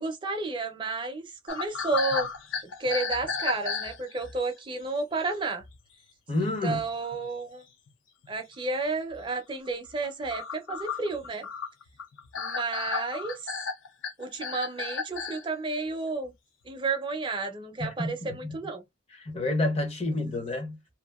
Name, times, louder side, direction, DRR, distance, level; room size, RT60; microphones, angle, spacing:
voice 1, 0.0-2.3 2.6-5.6 6.4-7.6 8.3-11.5 12.4-13.5 14.2-16.3 16.6-18.8, right 3 dB, 25° right, 0.5 m, -32 dB
sound 1, 1.5-4.4 5.2-5.3 5.6-5.8 6.3-6.4 6.7-7.3 7.9-8.0 8.2-8.3 9.1-9.2 9.7-15.4, left 5 dB, 80° left, 0.6 m, -34 dB
voice 2, 6.3-6.8 17.8-18.6 19.2-20.8, left 2 dB, 30° left, 0.6 m, -29 dB
2.7 x 2.4 x 2.3 m
head